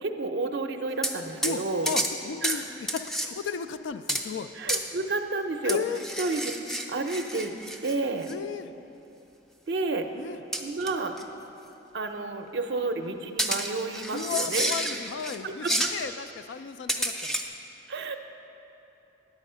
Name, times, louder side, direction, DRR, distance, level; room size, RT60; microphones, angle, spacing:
voice 1, 0.0-1.9 2.4-2.7 4.5-5.8 6.2-6.5 6.9-7.5 7.8-8.3 9.7-10.1 10.6-11.2 11.9-14.7 15.4-15.7 17.9-18.2, right 3 dB, 65° right, 5 dB, 0.5 m, -30 dB
sound 1, 1.0-1.2 1.4-1.6 1.9-2.1 2.4-2.6 2.9-3.3 4.1-4.3 4.7-4.8 5.7-7.9 8.3-8.4 10.5-10.9 11.2-11.3 13.4-15.4 15.6-16.0 16.9-17.5, right 1 dB, ahead, 0.4 m, -30 dB
voice 2, 1.4-4.5 5.6-6.0 8.3-8.7 10.2-10.4 14.1-17.4, left 6 dB, 80° left, 12 dB, 0.3 m, -34 dB
10.5 x 7.1 x 5.5 m, 2.9 s
head